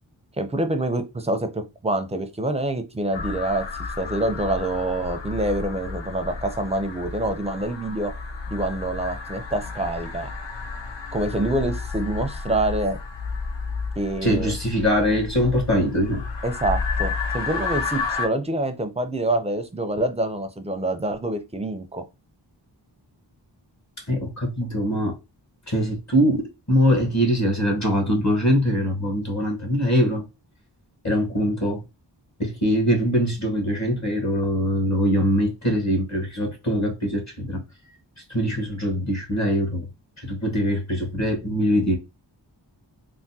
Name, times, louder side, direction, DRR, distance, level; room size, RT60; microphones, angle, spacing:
voice 1, 0.4-3.7 4.0-8.1 8.5-10.3 11.1-13.0 14.0-14.5 16.4-22.0, right 1 dB, 15° right, 0.5 m, -26 dB
sound 1, 3.1-18.3, left 4 dB, 70° left, 0.6 m, -31 dB
voice 2, 14.2-16.3 24.1-25.1 25.7-30.2 31.0-31.8 32.4-37.6 38.3-39.9 40.2-42.0, equal, 40° left, 1.1 m, -22 dB
3.5 x 2.2 x 2.7 m
wide cardioid pair, 60°, 45 cm